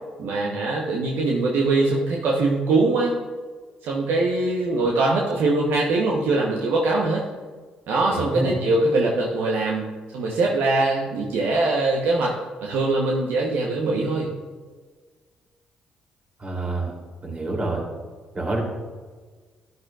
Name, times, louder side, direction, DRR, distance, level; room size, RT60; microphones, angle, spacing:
voice 1, 0.2-3.2 3.8-7.2 7.9-12.3 12.6-14.3, right 2 dB, 70° right, -2 dB, 1.1 m, -22 dB
voice 2, 8.1-8.5 16.4-16.9 17.2-17.8 18.3-18.6, right 2 dB, 35° right, -1 dB, 3.1 m, -27 dB
12.0 x 9.5 x 2.5 m, 1.4 s
hypercardioid pair, 50°, 4 cm